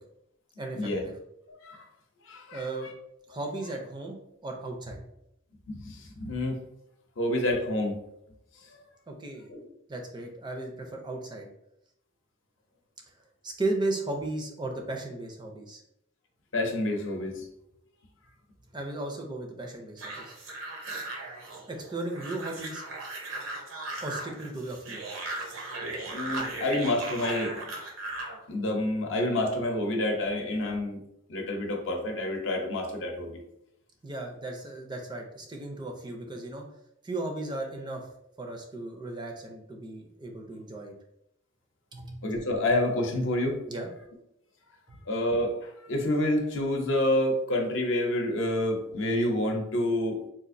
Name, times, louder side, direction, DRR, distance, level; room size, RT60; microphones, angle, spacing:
voice 1, 0.6-1.1 2.5-2.9 3.3-4.2 4.4-5.0 9.1-9.5 9.9-11.5 13.4-15.8 18.7-20.3 21.7-22.8 24.0-25.0 34.0-36.7 37.0-38.1 38.4-40.9 41.9-42.2 43.7-43.9 44.9-45.0, right 2 dB, 20° right, 2 dB, 0.4 m, -35 dB
voice 2, 1.5-1.8 2.3-2.7 5.7-6.6 7.2-8.0 8.7-8.8 9.5-9.6 16.5-17.4 26.0-27.6 28.5-31.0 31.3-33.4 42.2-43.6 45.1-50.2, left 1 dB, 65° left, 2 dB, 0.7 m, -28 dB
sound 1, 20.0-28.4, right 2 dB, 75° right, 0.8 m, -37 dB
4.0 x 2.4 x 2.5 m, 0.78 s
head